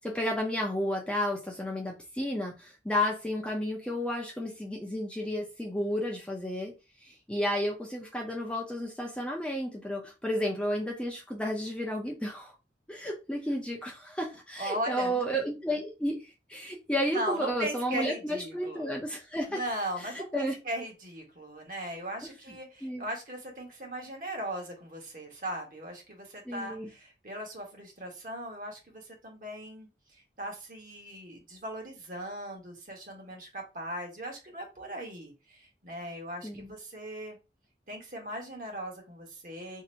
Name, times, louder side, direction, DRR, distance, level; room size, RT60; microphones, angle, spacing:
voice 1, 0.0-6.8 7.0-12.5 12.9-19.6 20.0-20.6 22.2-22.3 22.8-23.1 26.5-26.9 36.4-36.8, equal, 5° left, 0.5 m, -32 dB
voice 2, 14.6-15.2 17.1-18.9 19.5-37.4 37.9-39.8, right 1 dB, 50° right, 1.1 m, -38 dB
2.8 x 2.5 x 4.2 m
head